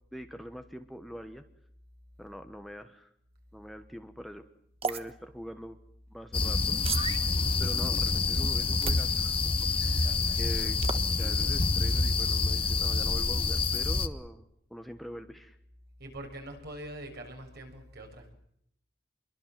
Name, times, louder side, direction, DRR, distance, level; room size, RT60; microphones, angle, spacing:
voice 1, 0.1-1.4 2.2-3.1 3.5-4.4 4.8-5.8 6.1-6.8 7.6-9.4 9.8-10.1 10.4-10.8 11.2-14.4 14.7-15.6, equal, ahead, 7 dB, 1.2 m, -43 dB
sound 1, 4.8-5.0 6.8-7.2 8.8-9.1 10.8-11.0, right 5 dB, 30° right, 1.3 m, -32 dB
sound 2, 6.3-14.1, left 3 dB, 30° left, 1.2 m, -27 dB
voice 2, 9.8-10.6 16.0-18.3, right 1 dB, 55° right, 4 dB, 6.8 m, -44 dB
27.5 x 23.0 x 7.6 m, 0.71 s
head